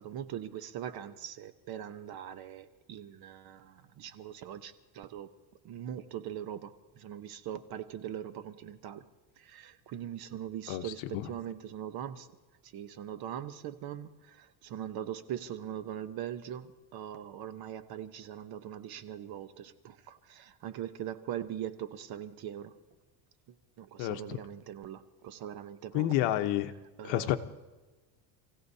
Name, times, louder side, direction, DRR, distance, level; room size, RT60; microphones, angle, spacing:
voice 1, 0.0-5.3 5.6-9.1 9.4-12.3 12.6-22.7 23.8-26.1 27.0-27.4, right 10 dB, 45° right, 11 dB, 1.0 m, -41 dB
voice 2, 10.7-11.3 24.0-24.4 25.9-26.7 27.0-27.4, left 13 dB, 65° left, 9 dB, 1.1 m, -30 dB
28.5 x 16.0 x 2.8 m, 1.2 s
cardioid pair, 135°, 50 cm